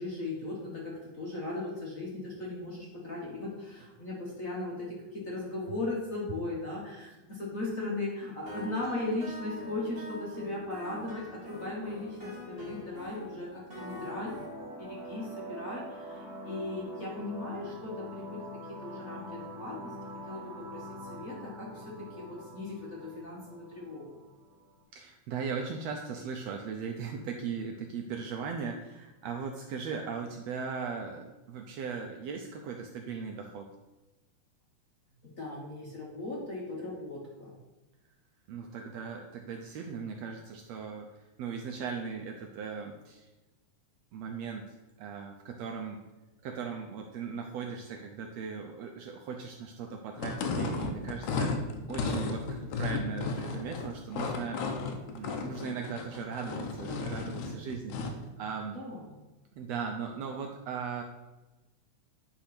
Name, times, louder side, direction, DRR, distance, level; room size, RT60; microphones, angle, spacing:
voice 1, 0.0-19.9 20.3-20.4 20.7-21.8 22.2-24.1 35.2-37.6 58.7-59.1, left 2 dB, 45° left, -5 dB, 1.1 m, -38 dB
sound 1, 8.5-14.5, left 1 dB, 25° right, 1.3 m, -44 dB
sound 2, 13.8-24.8, equal, 5° right, 0.4 m, -44 dB
voice 2, 24.9-33.7 38.5-43.3 44.1-46.0 46.4-54.6 55.1-58.8 59.6-61.0, right 5 dB, 75° right, 3 dB, 1.5 m, -38 dB
sound 3, 50.2-58.3, left 4 dB, 85° left, 2.3 m, -34 dB
9.8 x 3.7 x 5.9 m, 1.1 s
omnidirectional pair, 3.6 m